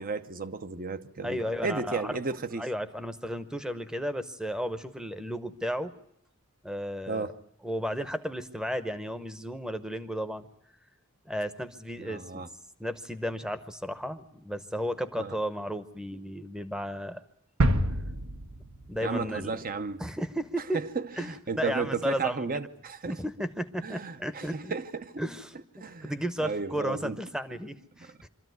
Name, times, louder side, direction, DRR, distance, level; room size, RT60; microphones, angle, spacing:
voice 1, 0.0-2.7 7.1-7.4 12.0-12.5 15.2-15.3 19.0-20.0 20.7-23.2 23.8-25.2 25.8-26.1 26.4-27.2 28.1-28.2, right 4 dB, 40° right, 0.8 m, -33 dB
voice 2, 1.2-2.2 2.6-5.9 6.6-7.3 7.6-10.5 11.3-12.4 12.8-17.2 18.9-19.6 20.0-20.8 21.2-22.5 23.1-24.7 25.2-25.5 26.0-28.3, equal, 5° right, 0.9 m, -34 dB
sound 1, 17.6-19.5 19.9-20.0, right 1 dB, 70° right, 1.2 m, -28 dB
25.0 x 13.5 x 9.4 m
head